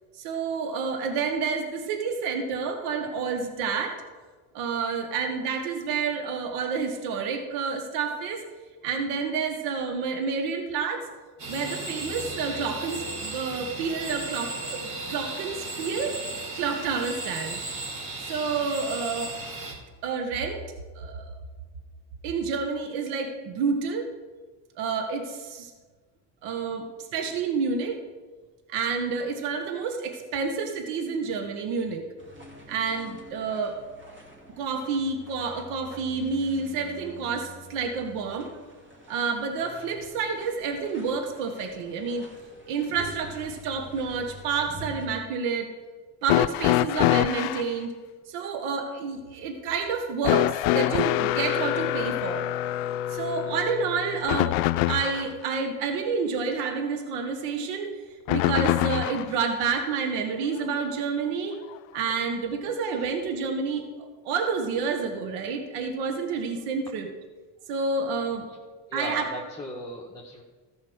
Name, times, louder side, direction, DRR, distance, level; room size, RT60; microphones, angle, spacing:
voice 1, 0.2-4.0 4.5-8.4 8.8-11.1 11.5-17.6 18.3-19.3 20.0-20.6 20.9-21.3 22.2-24.1 24.8-25.7 26.4-28.0 28.7-32.1 32.7-33.8 34.6-38.5 39.1-42.3 42.7-45.7 46.2-47.9 48.3-52.4 53.1-54.5 54.9-57.9 58.3-61.5 61.9-67.1 67.7-68.5 68.9-69.3, right 5 dB, 80° right, 5 dB, 1.5 m, -29 dB
sound 1, 11.4-19.7, right 2 dB, 65° right, 3.5 m, -35 dB
sound 2, 32.2-45.1, left 1 dB, 25° right, 2.6 m, -47 dB
sound 3, 46.3-47.7 50.2-55.3 58.3-59.3 60.6-60.7 61.7-61.8, left 15 dB, 80° left, 0.5 m, -25 dB
voice 2, 68.9-70.4, equal, 5° left, -4 dB, 1.8 m, -36 dB
14.0 x 5.5 x 6.3 m, 1.3 s
supercardioid pair, 80°, 49 cm